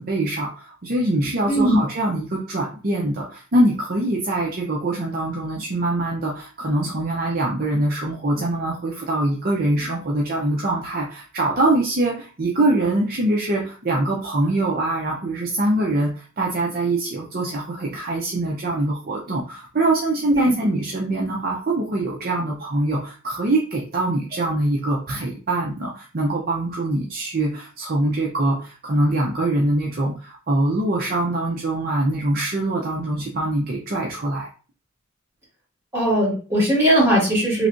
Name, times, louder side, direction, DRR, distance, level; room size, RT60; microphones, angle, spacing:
voice 1, 0.0-34.5, right 2 dB, 45° right, -2 dB, 0.6 m, -23 dB
voice 2, 35.9-37.7, right 1 dB, 10° right, -8 dB, 1.8 m, -19 dB
3.4 x 3.2 x 2.5 m, 0.37 s
head